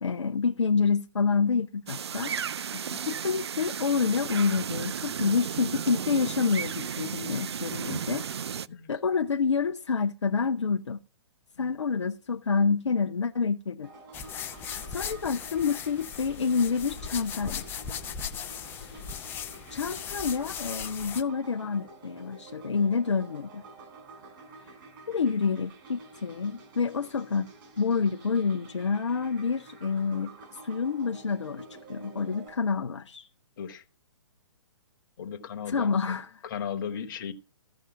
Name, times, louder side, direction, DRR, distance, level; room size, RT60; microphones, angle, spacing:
voice 1, 0.0-8.3 8.9-11.0 11.6-13.9 14.5-14.6 14.9-17.7 19.7-23.6 25.1-27.5 27.8-30.3 30.6-33.3 35.7-36.3, left 5 dB, 70° left, 0.6 m, -28 dB
sound 1, 1.9-8.7, right 7 dB, 60° right, 0.4 m, -34 dB
sound 2, 13.8-32.5, right 2 dB, 45° right, 6.2 m, -49 dB
sound 3, 14.1-21.2, left 7 dB, 15° left, 0.6 m, -38 dB
voice 2, 35.2-36.2 36.4-37.3, left 7 dB, 45° left, 1.3 m, -36 dB
15.0 x 5.4 x 4.9 m
figure-of-eight pair, 125°, 15 cm